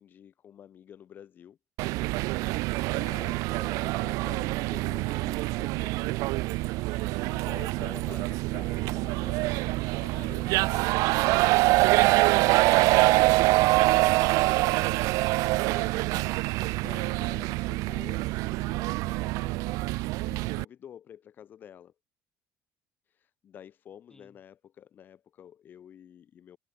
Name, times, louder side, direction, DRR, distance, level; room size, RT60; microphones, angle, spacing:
voice 1, 0.0-1.6 2.8-6.2 6.6-6.8 7.2-11.0 11.9-19.8 20.2-21.9 23.1-26.6, left 9 dB, 35° left, 1.3 m, -49 dB
sound 1, 1.8-20.6, right 22 dB, 75° right, 0.4 m, -25 dB
voice 2, 2.4-2.9 6.8-7.5 8.0-8.5 11.6-12.2 24.1-24.4, left 2 dB, 10° left, 4.1 m, -55 dB
cardioid pair, 175°, 6 cm